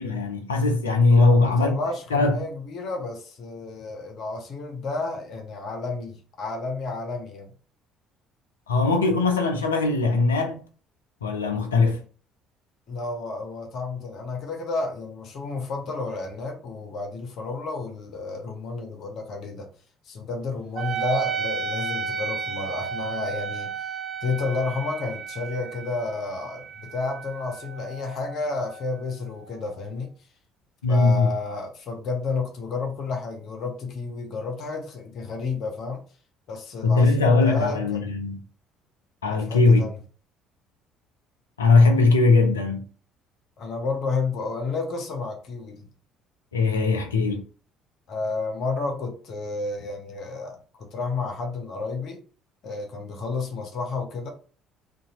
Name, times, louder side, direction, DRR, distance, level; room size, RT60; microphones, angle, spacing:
voice 1, 0.0-1.7 2.1-2.4 8.7-10.6 11.2-12.0 30.8-31.3 36.8-38.4 39.2-39.9 41.6-42.8 46.5-47.4, left 3 dB, 85° left, 0.5 m, -20 dB
voice 2, 1.1-7.5 12.9-19.7 20.1-23.7 24.2-30.1 30.9-36.0 36.5-38.2 39.3-40.0 43.6-45.9 48.1-52.2 52.6-54.3, left 4 dB, 55° left, 0.7 m, -31 dB
Wind instrument woodwind instrument, 20.8-29.7, right 6 dB, 45° right, 0.4 m, -33 dB
2.7 x 2.3 x 2.9 m
figure-of-eight pair, 55°, 0 cm